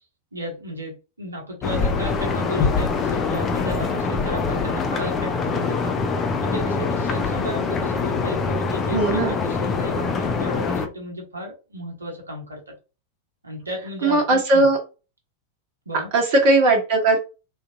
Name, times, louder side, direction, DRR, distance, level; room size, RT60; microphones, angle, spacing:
voice 1, 0.3-6.0 6.4-12.7 13.4-14.7 15.9-16.1, equal, 80° right, 0 dB, 1.0 m, -34 dB
sound 1, 1.6-10.9, left 4 dB, 25° left, 0.6 m, -24 dB
voice 2, 8.9-9.4 14.0-14.8 16.1-17.2, right 2 dB, 45° right, 2 dB, 1.0 m, -18 dB
3.7 x 2.6 x 2.6 m, 0.31 s
figure-of-eight pair, 90°, 0 cm